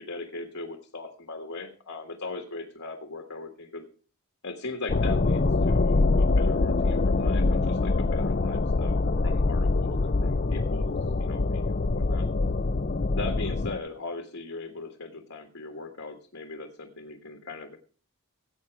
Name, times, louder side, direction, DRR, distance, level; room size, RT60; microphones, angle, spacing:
voice 1, 0.0-3.9 4.4-12.3 13.1-17.8, left 3 dB, 65° left, 5 dB, 1.6 m, -39 dB
sound 1, 4.9-13.8, left 3 dB, 40° left, 0.5 m, -24 dB
16.5 x 8.4 x 4.8 m, 0.39 s
head